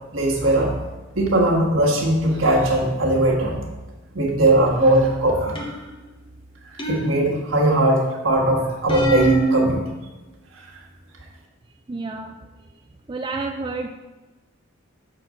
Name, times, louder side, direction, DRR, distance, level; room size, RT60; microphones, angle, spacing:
voice 1, 0.1-0.7 1.1-3.6 4.1-5.8 6.6-9.8, right 1 dB, 65° right, -2 dB, 1.5 m, -19 dB
sound 1, 5.6-6.0 6.8-7.7 8.9-9.7, right 3 dB, 25° left, 0.9 m, -24 dB
voice 2, 11.9-12.4 13.1-13.9, right 3 dB, 20° right, 3 dB, 0.3 m, -29 dB
5.9 x 4.4 x 6.4 m, 1.2 s
head